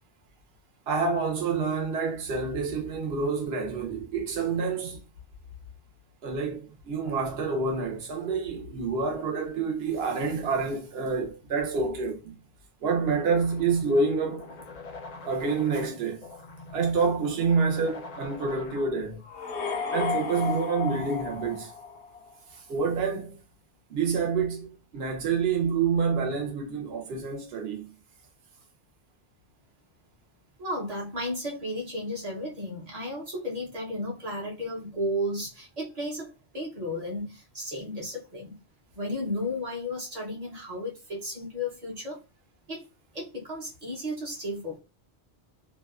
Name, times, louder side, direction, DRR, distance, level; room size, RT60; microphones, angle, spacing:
voice 1, 0.9-5.0 6.2-12.4 12.8-14.5 15.2-16.2 16.7-19.2 19.9-21.7 22.5-23.4 23.9-27.9, right 4 dB, 70° right, 0.9 m, -28 dB
sound 1, 13.2-19.2, left 3 dB, 55° left, 0.5 m, -44 dB
sound 2, 19.2-22.3, left 5 dB, 80° left, 0.9 m, -32 dB
voice 2, 30.6-38.6 38.9-42.2 42.7-42.8 43.1-44.8, left 1 dB, 40° right, 0.8 m, -34 dB
2.6 x 2.1 x 2.3 m
omnidirectional pair, 1.1 m